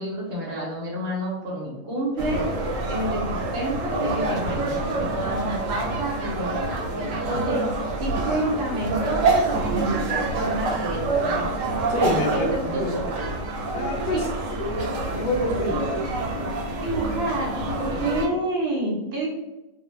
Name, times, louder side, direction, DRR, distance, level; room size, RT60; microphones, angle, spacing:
voice 1, 0.0-2.5 2.9-6.7 7.2-7.6 8.0-11.0 12.3-13.2 14.1-14.2 15.7-15.8 16.8-19.3, right 1 dB, 60° right, -3 dB, 0.8 m, -29 dB
sound 1, 2.2-18.3, right 2 dB, 85° right, 1.0 m, -27 dB
voice 2, 11.9-12.9 13.6-14.3 14.6-14.7 15.1-16.0, left 1 dB, 70° left, 0 dB, 0.8 m, -27 dB
2.3 x 2.0 x 3.0 m, 0.99 s
omnidirectional pair, 1.4 m